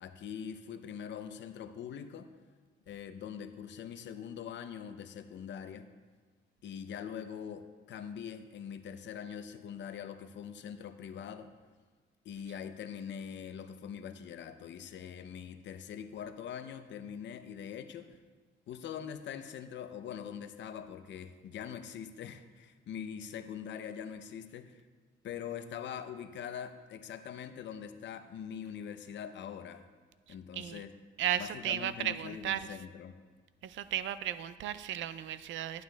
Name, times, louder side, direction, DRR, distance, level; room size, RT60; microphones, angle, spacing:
voice 1, 0.0-2.3 2.9-5.9 6.6-11.5 12.2-18.2 18.7-24.8 25.2-29.8 30.3-30.9 31.4-33.1, left 8 dB, 65° left, 9 dB, 0.6 m, -43 dB
voice 2, 31.2-32.7 33.6-35.8, right 11 dB, 75° right, 14 dB, 0.4 m, -35 dB
11.5 x 9.3 x 2.3 m, 1.4 s
cardioid pair, 90°, 20 cm